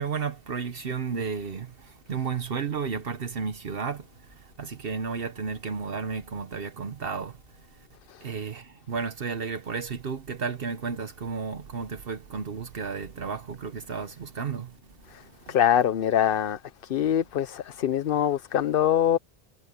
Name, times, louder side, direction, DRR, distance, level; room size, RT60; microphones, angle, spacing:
voice 1, 0.0-7.9 8.2-15.6, right 5 dB, 65° right, 1.1 m, -33 dB
voice 2, 15.5-16.6 16.9-19.2, left 10 dB, 65° left, 0.8 m, -23 dB
omnidirectional pair, 1.0 m